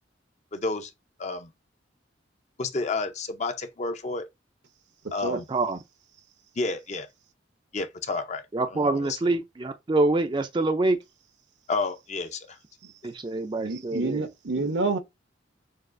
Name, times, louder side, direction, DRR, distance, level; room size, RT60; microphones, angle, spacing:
voice 1, 0.5-0.9 1.2-1.5 2.6-4.3 5.1-5.4 6.6-7.1 7.7-9.2 11.7-12.6, left 3 dB, 35° left, 0.5 m, -31 dB
voice 2, 5.5-5.8 8.5-11.0 13.0-14.3, right 2 dB, 25° right, 0.4 m, -25 dB
voice 3, 13.6-15.0, right 3 dB, 75° right, 0.8 m, -28 dB
6.4 x 2.4 x 2.5 m
head